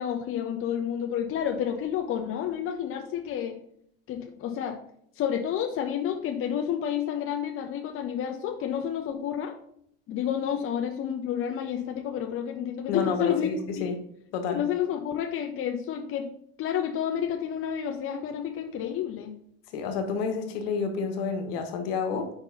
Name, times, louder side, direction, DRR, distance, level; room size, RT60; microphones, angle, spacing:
voice 1, 0.0-3.5 4.1-4.8 5.2-9.5 10.1-13.5 13.8-13.9 14.5-16.3 16.6-19.3, left 9 dB, 45° left, 4 dB, 0.9 m, -30 dB
voice 2, 12.9-14.0 14.3-14.6 19.7-22.3, left 5 dB, 75° left, 5 dB, 1.4 m, -30 dB
5.4 x 4.4 x 5.5 m, 0.68 s
supercardioid pair, 100°, 30 cm